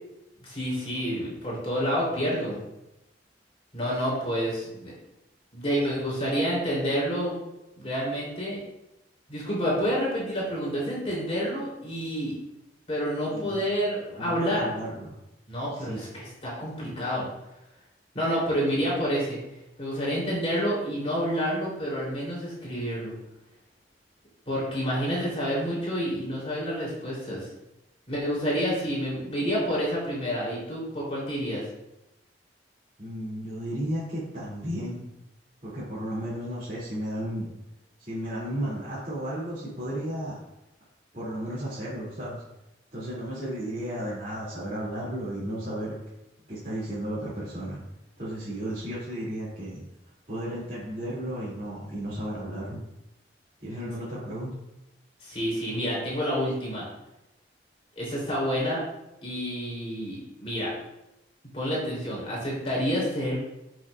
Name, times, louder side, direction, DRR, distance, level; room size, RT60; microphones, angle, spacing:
voice 1, 0.4-2.6 3.7-4.9 5.5-7.4 7.8-8.6 9.3-12.3 12.9-14.7 15.5-17.3 18.1-19.4 19.8-23.1 24.4-27.5 28.1-31.6 55.2-56.9 57.9-58.8 59.2-60.7 61.5-63.4, equal, 35° left, -6 dB, 3.4 m, -28 dB
voice 2, 14.2-15.1 15.7-16.0 33.0-35.0 35.6-37.4 38.0-40.4 41.1-42.4 42.9-45.9 46.5-47.8 48.2-49.8 50.3-52.8 53.6-54.5, equal, 40° right, -11 dB, 2.8 m, -34 dB
14.0 x 6.3 x 2.5 m, 0.92 s
head